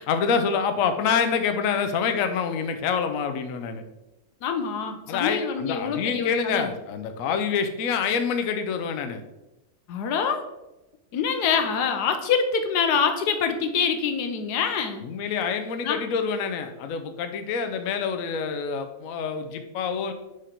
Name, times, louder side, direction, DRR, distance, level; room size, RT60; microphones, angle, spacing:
voice 1, 0.0-3.8 5.1-9.2 15.0-20.1, left 6 dB, 65° left, 7 dB, 0.9 m, -26 dB
voice 2, 4.4-6.7 9.9-10.4 11.1-15.0 15.8-16.0, left 6 dB, 85° left, 7 dB, 1.3 m, -25 dB
5.1 x 5.0 x 4.3 m, 0.96 s
omnidirectional pair, 1.7 m